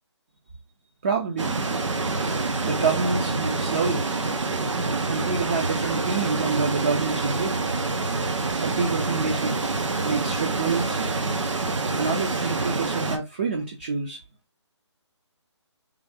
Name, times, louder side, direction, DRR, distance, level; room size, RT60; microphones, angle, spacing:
voice 1, 1.0-1.6 2.6-4.0 5.1-7.6 8.6-9.6 10.0-11.0 12.0-14.2, right 4 dB, 20° right, 0.4 m, -27 dB
sound 1, 1.4-13.2, right 3 dB, 85° right, 0.8 m, -27 dB
3.6 x 2.5 x 3.3 m
hypercardioid pair, 165°, 15 cm